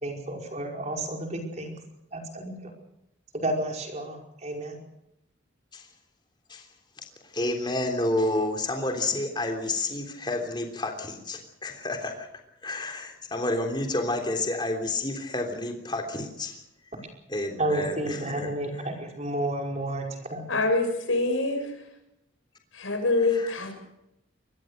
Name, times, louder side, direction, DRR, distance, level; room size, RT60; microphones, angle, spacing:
voice 1, 0.0-1.8 2.1-2.7 3.4-4.8 17.6-20.0 20.3-20.5, right 1 dB, 35° right, 2 dB, 5.1 m, -31 dB
voice 2, 7.2-12.3 12.6-16.6 17.3-18.5 23.2-23.5, left 2 dB, 20° left, 4 dB, 3.3 m, -30 dB
voice 3, 20.5-21.7 22.7-23.8, left 3 dB, 85° left, 5 dB, 6.7 m, -25 dB
24.5 x 20.0 x 6.6 m, 0.85 s
head